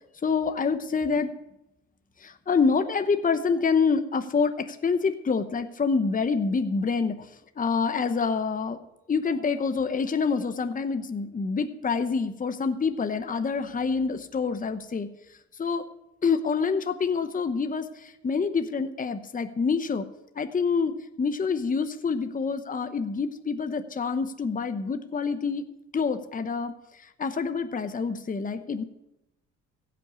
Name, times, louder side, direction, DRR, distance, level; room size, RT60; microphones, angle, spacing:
voice 1, 0.2-1.3 2.2-7.3 7.6-8.8 9.1-15.1 15.6-15.8 16.2-20.0 20.3-25.6 25.9-28.8, left 5 dB, 25° left, 9 dB, 0.9 m, -27 dB
16.0 x 6.0 x 8.1 m, 0.88 s
cardioid pair, 90°, 30 cm